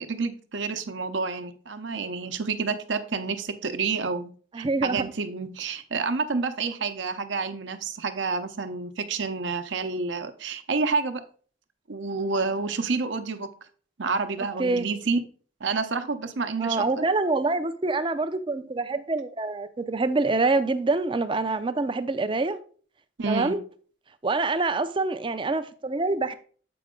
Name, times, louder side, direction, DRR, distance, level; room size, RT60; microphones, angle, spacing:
voice 1, 0.0-11.2 11.9-13.5 14.0-15.2 15.6-16.8 23.2-23.6, right 4 dB, 65° right, 0.7 m, -29 dB
voice 2, 4.5-5.1 14.6-14.9 16.6-22.6 23.3-23.6 24.2-26.3, right 3 dB, 25° right, 0.4 m, -26 dB
7.8 x 5.1 x 3.7 m
head